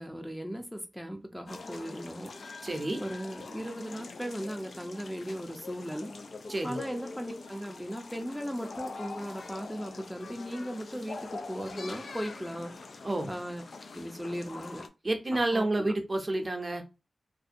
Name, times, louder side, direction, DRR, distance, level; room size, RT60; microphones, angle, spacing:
voice 1, 0.0-2.3 3.0-6.1 6.6-12.7 13.3-13.6 13.9-14.9 15.5-15.9, equal, ahead, 0.5 m, -37 dB
sound 1, 1.5-14.9, left 3 dB, 75° left, 0.3 m, -44 dB
voice 2, 2.6-3.0 6.5-6.8 13.0-13.3 15.0-16.8, right 2 dB, 40° right, 0.6 m, -29 dB
2.5 x 2.1 x 2.5 m
cardioid pair, 45°, 0 cm